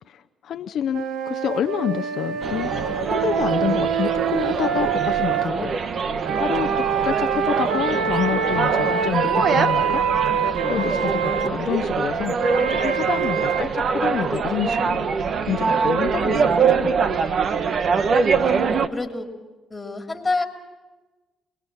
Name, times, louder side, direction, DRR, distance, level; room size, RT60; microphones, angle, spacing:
voice 1, 0.1-2.7 3.1-6.1 6.3-10.1 10.7-12.3 12.7-15.1 15.4-16.9, left 9 dB, 70° left, 8 dB, 0.7 m, -28 dB
sound 1, 0.9-5.5 6.2-11.5 12.4-13.6, right 7 dB, 90° right, 1.5 m, -25 dB
sound 2, 2.4-18.9, right 5 dB, 55° right, 1.2 m, -24 dB
voice 2, 18.4-19.3 19.7-20.4, left 3 dB, 20° left, 3 dB, 3.0 m, -28 dB
25.5 x 21.0 x 7.2 m, 1.2 s
cardioid pair, 90°, 0 cm